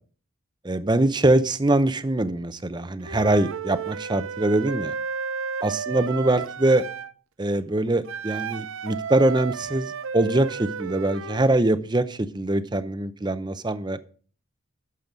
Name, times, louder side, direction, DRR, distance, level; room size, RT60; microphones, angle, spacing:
voice 1, 0.6-4.9 5.6-6.8 7.4-14.0, right 2 dB, 20° right, 13 dB, 0.6 m, -23 dB
Wind instrument woodwind instrument, 3.0-7.1 8.1-11.4, right 6 dB, 70° right, 0.5 m, -33 dB
12.5 x 7.7 x 5.1 m, 0.42 s
head